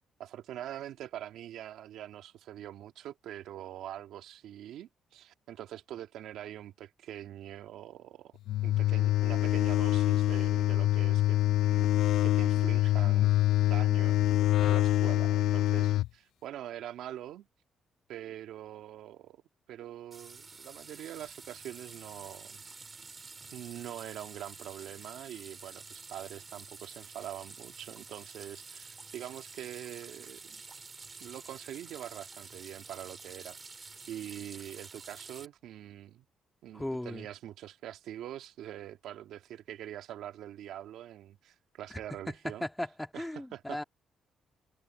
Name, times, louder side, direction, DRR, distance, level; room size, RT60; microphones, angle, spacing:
voice 1, 0.2-13.3 13.6-14.2 14.6-17.5 18.1-19.4 19.7-22.6 23.5-30.6 31.2-36.3 36.6-42.7 43.1-43.8, right 12 dB, 80° right, 2.0 m, -44 dB
sound 1, 8.5-16.1, left 15 dB, 80° left, 0.3 m, -25 dB
sound 2, 20.1-35.5, right 4 dB, 30° right, 3.1 m, -49 dB
voice 2, 36.7-37.3 41.9-42.0 42.3-43.8, left 1 dB, 10° left, 1.7 m, -37 dB
cardioid pair, 90°, 0 cm